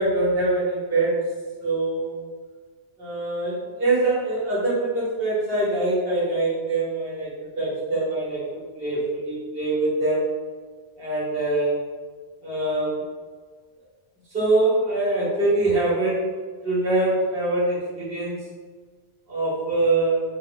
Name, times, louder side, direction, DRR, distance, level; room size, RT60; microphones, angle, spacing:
voice 1, 0.0-2.2 3.0-10.3 11.0-11.7 12.4-13.0 14.3-16.3 16.6-18.4 19.3-20.2, right 2 dB, 60° right, -8 dB, 1.6 m, -24 dB
3.5 x 2.3 x 3.9 m, 1.5 s
omnidirectional pair, 1.1 m